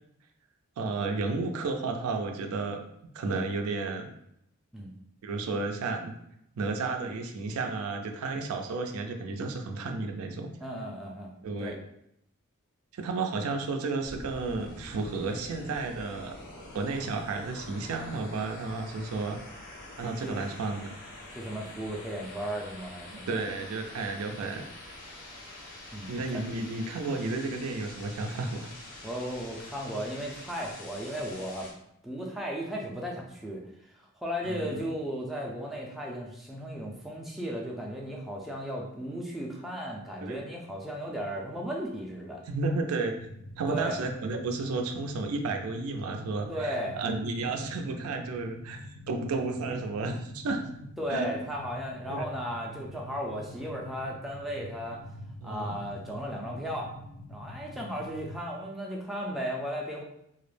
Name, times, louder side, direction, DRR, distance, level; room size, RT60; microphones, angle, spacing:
voice 1, 0.8-2.8 3.1-4.1 5.2-6.2 6.6-10.5 11.4-11.7 12.9-16.4 16.7-20.9 23.3-24.6 26.1-28.7 34.4-34.8 40.2-40.4 42.5-43.2 43.6-50.6 51.1-51.3 52.1-52.3 55.4-55.8, right 3 dB, 90° right, 4 dB, 0.4 m, -32 dB
voice 2, 10.6-11.3 11.6-11.8 20.2-20.3 21.3-23.4 25.9-26.5 29.0-31.7 32.0-33.6 34.2-42.4 43.7-44.0 46.5-47.0 51.0-55.0 55.4-56.9 57.3-60.0, equal, ahead, -2 dB, 0.3 m, -35 dB
sound 1, 14.0-31.7, left 1 dB, 45° left, 0.6 m, -46 dB
sound 2, 43.2-58.4, left 1 dB, 85° left, 0.4 m, -45 dB
2.3 x 2.0 x 3.1 m, 0.77 s
head